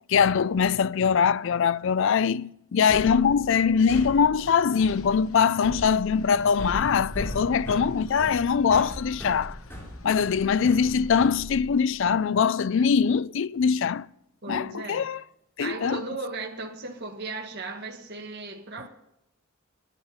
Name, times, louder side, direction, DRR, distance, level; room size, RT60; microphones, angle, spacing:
voice 1, 0.1-9.6 10.0-14.1 14.5-15.2 15.6-16.0, left 6 dB, 65° left, 0.4 m, -22 dB
pasos en superboard, 2.9-12.0, equal, 10° left, 3.9 m, -38 dB
sound 1, 4.4-11.3, left 3 dB, 85° left, 0.9 m, -46 dB
voice 2, 14.4-15.0 15.6-18.9, right 3 dB, 50° right, 1.7 m, -36 dB
9.8 x 9.0 x 9.5 m
head